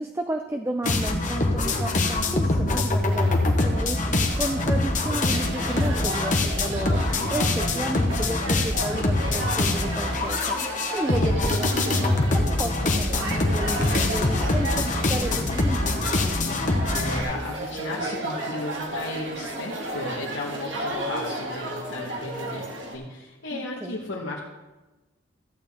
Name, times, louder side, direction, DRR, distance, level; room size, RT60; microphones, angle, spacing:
voice 1, 0.0-16.1 23.5-24.0, right 1 dB, 15° right, 5 dB, 0.4 m, -33 dB
sound 1, 0.8-17.2, left 2 dB, 40° left, 1.1 m, -24 dB
sound 2, 3.1-23.0, right 1 dB, 75° right, 1.7 m, -34 dB
voice 2, 16.9-24.4, left 2 dB, 75° left, -4 dB, 1.3 m, -34 dB
14.5 x 8.5 x 3.6 m, 1.1 s
head